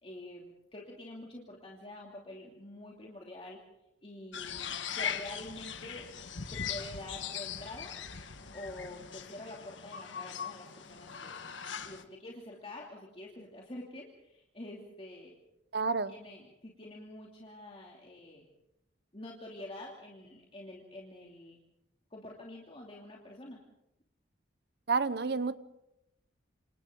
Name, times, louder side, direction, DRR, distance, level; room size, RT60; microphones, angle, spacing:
voice 1, 0.0-3.6 4.0-6.1 6.5-7.9 8.5-11.4 11.8-15.3 16.1-18.5 19.1-21.6 22.1-23.6, left 1 dB, 30° left, 2.9 m, -47 dB
sound 1, 4.3-12.0, left 7 dB, 90° left, 1.5 m, -40 dB
voice 2, 15.7-16.1 24.9-25.5, right 4 dB, 65° right, 1.0 m, -29 dB
28.0 x 27.0 x 4.0 m
head